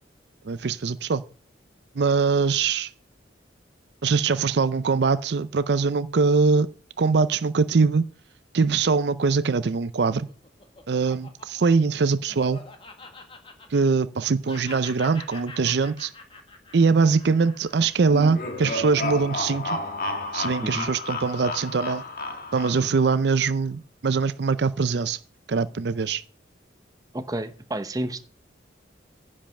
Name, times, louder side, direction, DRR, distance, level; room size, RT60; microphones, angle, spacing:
voice 1, 0.4-1.2 2.0-2.9 4.0-6.7 7.0-8.0 8.5-10.3 10.9-12.6 13.7-16.1 16.7-19.8 20.3-22.0 22.5-25.2 25.5-26.2, right 4 dB, 65° right, 0.5 m, -22 dB
Laughter, 9.9-14.2 14.5-18.9, left 3 dB, 30° left, 1.7 m, -45 dB
sound 1, 18.0-23.1, left 2 dB, 50° left, 1.6 m, -32 dB
voice 2, 20.6-20.9 27.1-28.2, right 1 dB, 20° right, 0.8 m, -30 dB
10.0 x 5.4 x 7.5 m
head